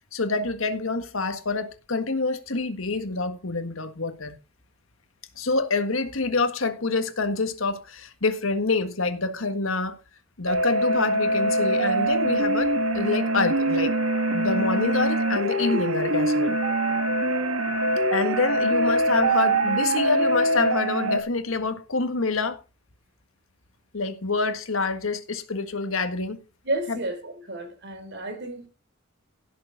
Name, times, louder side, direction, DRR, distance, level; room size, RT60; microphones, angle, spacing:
voice 1, 0.1-4.4 5.3-10.0 10.4-13.9 14.3-16.6 18.1-22.6 23.9-26.4 26.9-27.0, left 3 dB, 80° left, 1.7 m, -26 dB
sound 1, 10.5-21.2, right 1 dB, 80° right, 1.8 m, -23 dB
voice 2, 26.6-28.7, right 1 dB, 60° right, 3.4 m, -31 dB
16.5 x 6.9 x 3.9 m
head